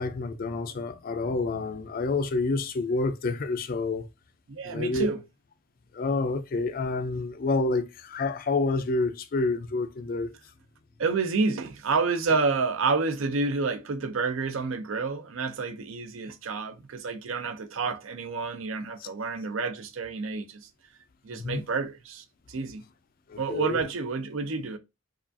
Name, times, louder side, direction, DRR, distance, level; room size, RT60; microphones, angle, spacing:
voice 1, 0.0-4.1 4.6-5.1 5.9-10.3 21.3-21.6 23.3-23.8, left 3 dB, 40° left, 0.3 m, -28 dB
voice 2, 4.5-5.2 11.0-20.7 21.2-22.8 23.4-24.8, right 4 dB, 70° right, 0.5 m, -29 dB
4.6 x 2.4 x 2.6 m
head